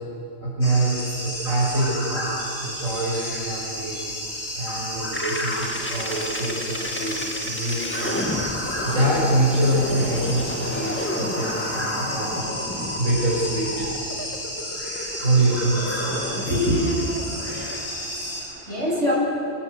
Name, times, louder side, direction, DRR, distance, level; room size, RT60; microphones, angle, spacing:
voice 1, 0.4-4.0 4.5-8.3 8.8-13.9 15.2-16.0 16.4-16.8, right 1 dB, 90° right, -6 dB, 6.4 m, -25 dB
sound 1, 0.6-18.4, equal, 85° left, 8.2 m, -32 dB
sound 2, 5.1-17.8, left 1 dB, 10° left, 1.9 m, -32 dB
voice 2, 17.7-19.1, left 1 dB, 65° right, -5 dB, 7.9 m, -28 dB
27.0 x 18.0 x 8.1 m, 2.8 s
omnidirectional pair, 1.3 m